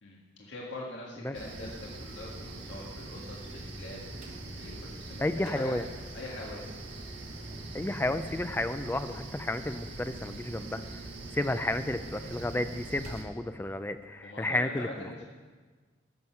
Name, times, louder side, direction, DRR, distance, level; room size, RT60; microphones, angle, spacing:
voice 1, 0.0-5.7 6.1-6.7 14.2-15.3, left 1 dB, 85° left, -3 dB, 1.8 m, -43 dB
sound 1, 1.3-13.2, right 2 dB, 85° right, 1.6 m, -43 dB
sound 2, 4.2-4.5 5.0-13.4, right 1 dB, 40° right, 1.0 m, -52 dB
voice 2, 5.2-5.9 7.7-10.8 11.3-14.9, left 1 dB, 10° left, 11 dB, 0.4 m, -32 dB
12.5 x 7.9 x 5.8 m, 1.4 s
head